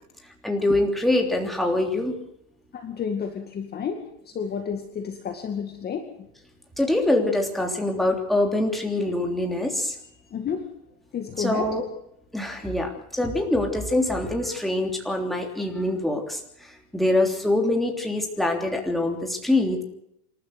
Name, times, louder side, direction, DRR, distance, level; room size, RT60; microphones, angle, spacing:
voice 1, 0.4-2.2 6.8-10.0 11.4-11.9 12.3-19.8, left 1 dB, ahead, 2 dB, 3.3 m, -24 dB
voice 2, 2.7-4.0 4.3-6.1 10.3-10.6 11.1-11.7, left 7 dB, 20° left, 4 dB, 2.2 m, -30 dB
28.0 x 12.5 x 8.1 m, 0.77 s
supercardioid pair, 145°, 44 cm